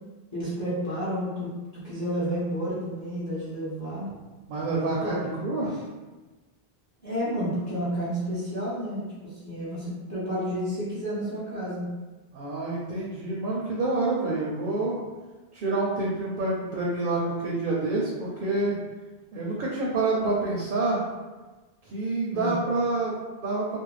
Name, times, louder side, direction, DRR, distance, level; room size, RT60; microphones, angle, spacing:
voice 1, 0.3-4.1 4.7-5.2 5.7-5.8 7.0-11.9 22.3-22.6, equal, 20° left, -9 dB, 0.7 m, -31 dB
voice 2, 4.5-5.7 12.3-15.0 15.5-18.8 19.3-21.0 21.9-23.8, right 2 dB, 60° right, -4 dB, 0.7 m, -27 dB
2.5 x 2.1 x 3.1 m, 1.2 s
omnidirectional pair, 1.0 m